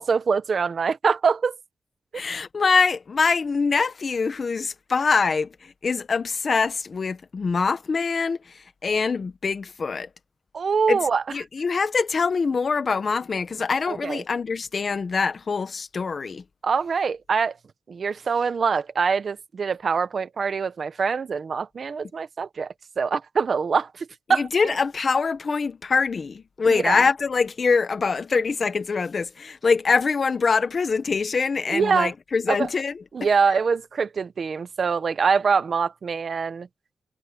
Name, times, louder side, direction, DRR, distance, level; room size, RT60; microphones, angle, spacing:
voice 1, 0.0-1.6 10.5-11.2 13.9-14.2 16.6-17.6 17.9-24.8 26.7-27.0 31.7-32.1 32.5-32.7 33.1-36.7, right 5 dB, 45° right, 0.9 m, -24 dB
voice 2, 2.1-8.4 8.8-10.1 10.9-11.0 11.3-16.4 24.3-32.9, left 4 dB, 40° left, 1.2 m, -24 dB
wide cardioid pair, 140°, 0 cm